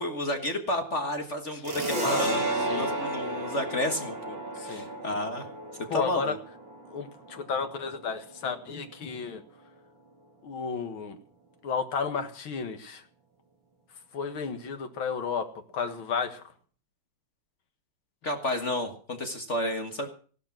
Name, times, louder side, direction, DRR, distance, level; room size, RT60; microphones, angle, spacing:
voice 1, 0.0-5.4 5.9-6.4 18.2-20.1, left 1 dB, 35° left, 5 dB, 1.8 m, -31 dB
sound 1, 1.6-8.8, right 2 dB, 65° right, 4.7 m, -33 dB
voice 2, 2.0-2.9 4.6-4.8 5.9-6.3 6.9-9.4 10.4-11.2 11.6-13.0 14.1-15.5 15.7-16.4, left 5 dB, 80° left, 7 dB, 2.5 m, -32 dB
15.5 x 12.0 x 6.0 m, 0.42 s
omnidirectional pair, 2.2 m